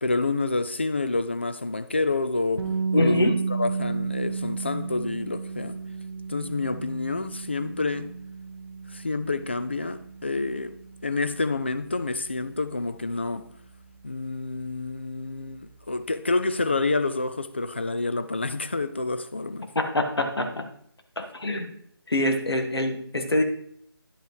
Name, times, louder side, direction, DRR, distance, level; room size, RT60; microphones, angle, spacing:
voice 1, 0.0-5.8 6.3-8.1 8.9-10.7 11.0-13.5 14.0-19.7, left 3 dB, 25° left, 0.3 m, -28 dB
sound 1, 2.6-14.4, right 5 dB, 80° right, 1.1 m, -33 dB
voice 2, 2.9-3.3 19.7-20.7 21.2-21.7 22.1-23.4, left 1 dB, 75° left, 1.7 m, -25 dB
10.5 x 5.3 x 4.6 m
figure-of-eight pair, 165°, 13 cm